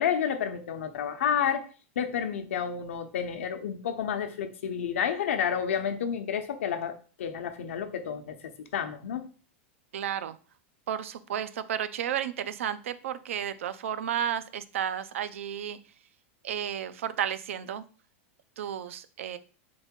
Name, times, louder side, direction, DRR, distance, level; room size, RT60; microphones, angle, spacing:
voice 1, 0.0-1.7 2.0-9.2, left 8 dB, 90° left, 7 dB, 0.8 m, -30 dB
voice 2, 9.9-10.4 10.9-15.8 16.4-17.8 18.6-19.4, right 9 dB, 90° right, 13 dB, 0.5 m, -32 dB
3.9 x 3.5 x 3.8 m, 0.37 s
supercardioid pair, 160°, 7 cm